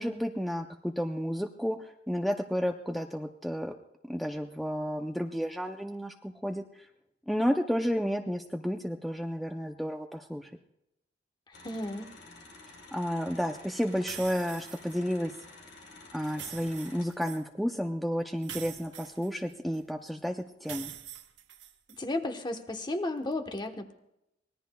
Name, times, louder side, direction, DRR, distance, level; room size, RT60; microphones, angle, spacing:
voice 1, 0.0-3.7 4.1-6.6 7.3-10.5 12.9-15.3 16.1-20.9, equal, ahead, 3 dB, 0.6 m, -32 dB
sound 1, 11.5-17.1, left 2 dB, 90° left, 4.0 m, -51 dB
voice 2, 11.6-12.1 22.0-23.9, left 2 dB, 25° left, 6 dB, 1.1 m, -34 dB
sound 2, 14.1-15.0 16.2-17.4 18.4-19.8 20.6-22.0, right 10 dB, 90° right, 1.2 m, -44 dB
24.5 x 20.0 x 2.3 m, 0.85 s
head